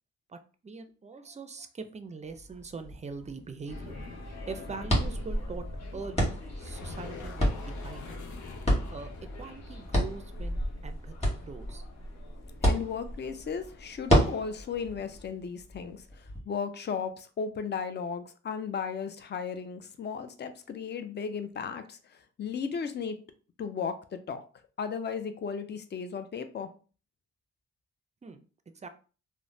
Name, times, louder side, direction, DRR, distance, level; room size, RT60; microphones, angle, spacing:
voice 1, 0.6-3.9 4.5-5.7 5.9-8.1 8.9-9.1 9.4-11.8 28.2-28.4 28.7-28.9, right 4 dB, 25° right, 8 dB, 0.4 m, -42 dB
sound 1, 2.2-16.4, equal, 20° left, 1.5 m, -32 dB
sound 2, 3.7-15.3, equal, 60° left, 0.9 m, -41 dB
sound 3, 6.5-12.2, left 5 dB, 90° left, 0.6 m, -48 dB
voice 2, 12.6-23.2 23.6-24.4 24.8-26.7, left 6 dB, 35° left, 9 dB, 0.4 m, -35 dB
3.1 x 2.1 x 2.6 m, 0.37 s
cardioid pair, 65°, 29 cm